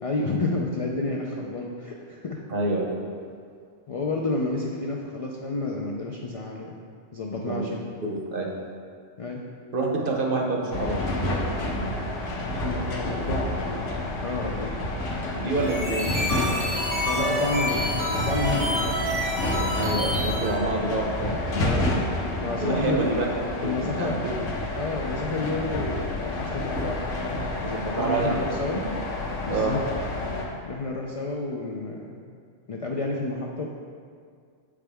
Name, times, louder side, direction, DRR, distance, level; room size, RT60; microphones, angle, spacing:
voice 1, 0.0-2.4 3.9-6.8 7.1-7.8 9.2-9.4 12.6-13.8 14.2-14.7 17.1-19.0 21.3-22.0 22.4-23.2 23.6-24.2 24.8-28.8 29.5-29.9 30.6-32.2 32.7-33.6, left 2 dB, 60° left, -1 dB, 0.3 m, -30 dB
voice 2, 2.5-2.8 7.4-7.7 8.1-8.5 9.7-11.0 15.3-16.1 19.8-21.4 22.6-23.3 23.6-23.7 24.0-24.1 27.7-28.3 28.7-29.0 29.5-29.7, right 2 dB, 50° right, -1 dB, 0.9 m, -27 dB
sound 1, 10.7-30.4, left 1 dB, 90° left, 1.2 m, -29 dB
sound 2, 15.5-20.6, equal, 90° right, 2.2 m, -29 dB
7.6 x 4.9 x 3.4 m, 2.1 s
omnidirectional pair, 1.2 m